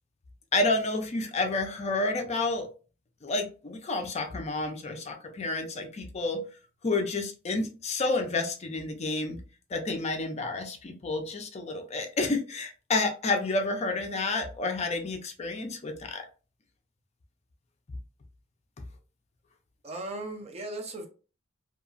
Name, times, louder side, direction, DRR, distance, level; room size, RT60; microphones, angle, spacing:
voice 1, 0.5-2.7 3.2-6.4 6.8-9.4 9.7-16.3, left 2 dB, 35° left, 0.4 m, -30 dB
voice 2, 19.8-21.1, right 2 dB, 30° right, 0.5 m, -37 dB
2.8 x 2.3 x 2.4 m
head